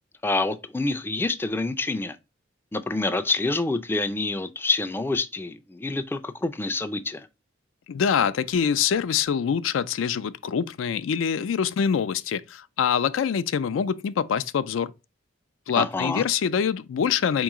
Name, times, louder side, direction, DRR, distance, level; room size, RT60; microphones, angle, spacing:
voice 1, 0.2-2.2 2.7-7.3 15.8-16.2, left 3 dB, 10° left, 0.3 m, -27 dB
voice 2, 7.9-14.9 15.7-17.4, left 7 dB, 85° left, 0.4 m, -25 dB
4.5 x 3.0 x 3.5 m
head